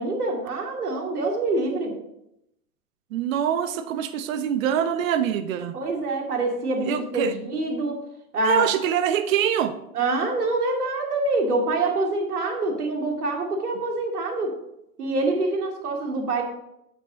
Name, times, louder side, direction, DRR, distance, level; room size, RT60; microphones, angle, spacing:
voice 1, 0.0-1.9 5.7-8.0 8.3-8.7 9.9-14.6 15.0-16.4, right 2 dB, 90° right, 1 dB, 2.6 m, -25 dB
voice 2, 3.1-5.8 6.9-7.3 8.4-9.8, right 9 dB, 60° right, 11 dB, 1.1 m, -24 dB
8.7 x 8.6 x 3.9 m, 0.81 s
hypercardioid pair, 110°, 44 cm